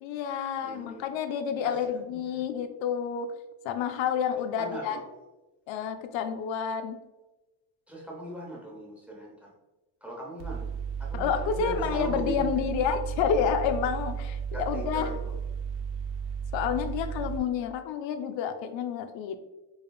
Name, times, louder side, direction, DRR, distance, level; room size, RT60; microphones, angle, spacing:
voice 1, 0.0-3.3 3.6-5.0 5.7-7.0 11.1-15.1 16.5-19.4, left 7 dB, 80° left, 8 dB, 0.5 m, -29 dB
voice 2, 0.6-1.1 1.6-2.4 4.6-5.0 7.9-9.5 10.0-10.7 11.0-12.7 14.5-15.3 17.3-17.4, right 1 dB, 5° right, -4 dB, 0.9 m, -39 dB
Mechanical fan, 10.4-17.4, right 7 dB, 65° right, 0.6 m, -34 dB
4.6 x 3.1 x 2.3 m, 1.1 s
cardioid pair, 145°, 44 cm